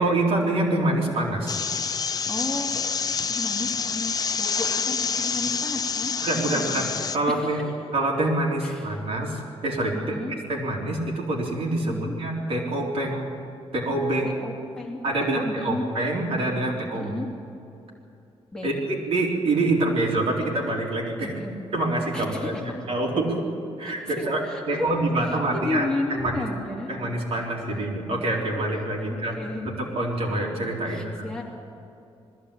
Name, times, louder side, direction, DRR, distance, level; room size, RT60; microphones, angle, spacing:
voice 1, 0.0-1.6 6.2-6.9 7.1-7.6 7.9-9.9 10.5-13.3 13.7-14.4 15.0-17.1 18.6-21.3 21.7-23.4 23.8-24.4 24.7-25.9 26.2-26.4 26.9-29.4 29.7-31.3, right 2 dB, 65° right, -2 dB, 4.0 m, -26 dB
sound 1, 1.5-7.2, left 6 dB, 35° left, 0.6 m, -27 dB
voice 2, 2.3-2.7 3.3-6.1 6.5-6.8 7.3-7.6 8.6-9.0 9.9-10.3 11.8-12.2 14.2-15.0 15.3-15.8 16.9-17.3 18.5-18.9 21.2-21.6 22.1-22.7 23.8-24.9 25.2-25.4 25.6-26.9 27.4-27.8 28.6-28.7 29.0-29.7 30.8-31.4, left 2 dB, 5° left, -2 dB, 2.7 m, -33 dB
20.0 x 15.0 x 8.7 m, 2.6 s
wide cardioid pair, 135°, 11 cm